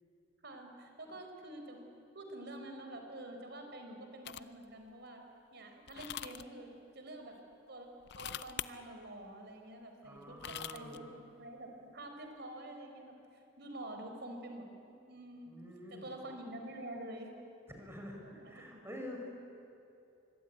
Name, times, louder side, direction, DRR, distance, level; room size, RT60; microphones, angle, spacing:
voice 1, 0.4-1.8 2.1-5.3 5.5-6.7 6.9-7.3 7.7-7.9 8.1-11.1 11.4-13.1 13.6-15.6 15.9-17.3 18.2-19.1, right 1 dB, 60° right, 4 dB, 4.5 m, -47 dB
sound 1, 4.3-4.6 5.9-6.5 8.0-8.7 10.2-11.0, left 10 dB, 60° left, 0.6 m, -42 dB
voice 2, 10.0-11.0 15.5-16.1 17.8-19.3, left 1 dB, 15° right, 1 dB, 5.4 m, -47 dB
24.5 x 24.0 x 9.5 m, 2.7 s
head